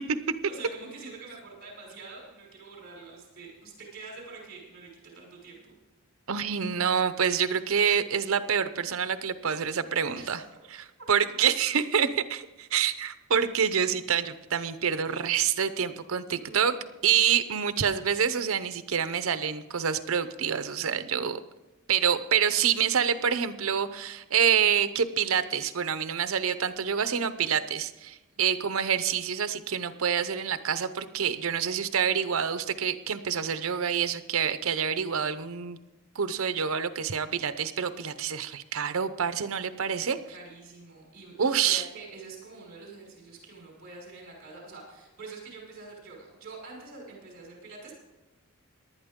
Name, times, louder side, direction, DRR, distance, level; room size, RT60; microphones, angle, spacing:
voice 1, 0.5-5.8 10.2-10.4 16.3-16.9 28.3-28.6 39.7-47.9, right 3 dB, 50° right, -2 dB, 5.2 m, -46 dB
voice 2, 6.3-10.4 10.7-16.7 17.0-21.4 21.9-35.8 36.2-40.2 41.4-41.8, right 7 dB, 70° right, 12 dB, 0.7 m, -27 dB
19.0 x 11.0 x 3.7 m, 1.0 s
head